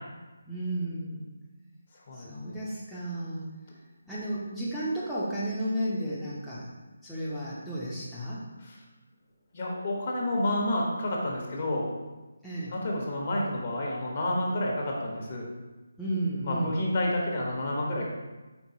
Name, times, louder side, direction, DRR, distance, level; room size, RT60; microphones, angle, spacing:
voice 1, 0.5-1.2 2.2-3.5 4.1-6.7 7.0-8.4 12.4-12.7 16.0-16.8, right 1 dB, ahead, -11 dB, 0.6 m, -33 dB
voice 2, 2.1-2.5 9.5-11.9 12.7-15.4 16.4-18.1, left 1 dB, 45° left, -2 dB, 1.0 m, -29 dB
4.5 x 3.8 x 2.8 m, 1.2 s
figure-of-eight pair, 155°, 0 cm